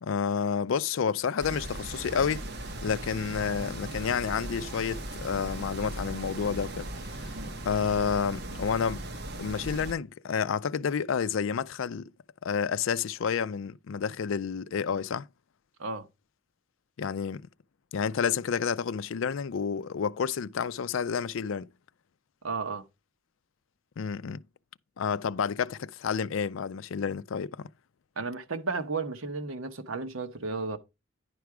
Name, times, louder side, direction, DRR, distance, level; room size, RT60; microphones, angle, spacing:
voice 1, 0.0-2.4 2.8-6.9 7.2-7.4 7.6-9.0 9.4-12.1 12.4-15.3 17.0-17.5 17.9-21.7 24.0-24.4 25.0-27.7, left 6 dB, 75° left, 0.4 m, -30 dB
sound 1, 1.4-9.9, right 1 dB, 55° right, 1.1 m, -38 dB
voice 2, 22.4-22.8 28.2-30.8, right 4 dB, 85° right, 1.0 m, -33 dB
10.5 x 4.7 x 4.8 m
head